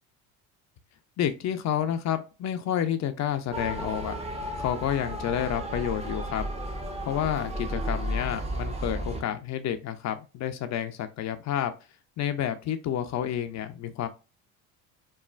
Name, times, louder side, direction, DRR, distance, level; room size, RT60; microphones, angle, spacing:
voice 1, 1.2-4.1 4.6-6.4 7.1-11.7 12.2-14.1, left 10 dB, 40° left, 9 dB, 0.4 m, -29 dB
Motor vehicle (road) / Siren, 3.5-9.2, equal, 15° right, 0.6 m, -33 dB
3.1 x 2.1 x 2.4 m, 0.30 s
hypercardioid pair, 70°, 43 cm